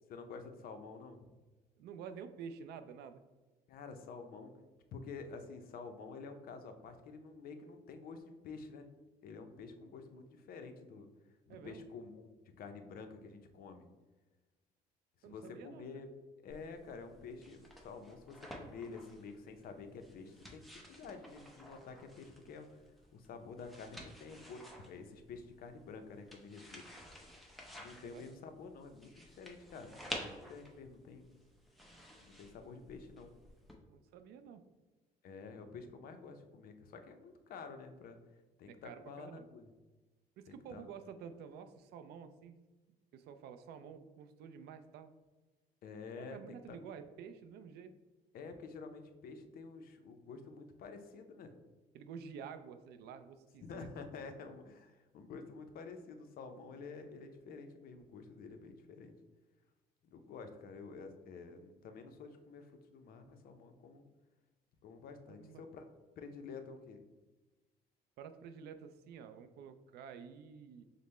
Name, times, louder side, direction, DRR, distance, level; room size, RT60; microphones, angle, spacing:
voice 1, 0.1-1.3 3.7-4.5 4.9-8.9 9.2-11.1 11.5-12.3 12.6-13.9 15.2-16.1 16.4-22.7 23.1-26.9 27.7-31.3 32.2-33.3 35.2-38.2 38.6-39.7 40.5-40.9 45.8-46.8 48.3-51.5 53.6-59.1 60.0-64.0 64.8-65.8 66.2-67.0, left 4 dB, 60° left, 7 dB, 0.5 m, -49 dB
voice 2, 1.8-3.2 11.5-11.8 15.2-15.9 28.0-28.2 33.9-34.6 38.7-39.5 40.4-42.5 43.1-45.1 46.2-47.9 51.9-53.9 65.3-65.6 68.2-70.8, right 7 dB, 75° right, 10 dB, 0.4 m, -50 dB
sound 1, 16.5-33.7, equal, ahead, 0.6 m, -52 dB
5.1 x 2.0 x 4.2 m, 1.2 s
cardioid pair, 110°, 17 cm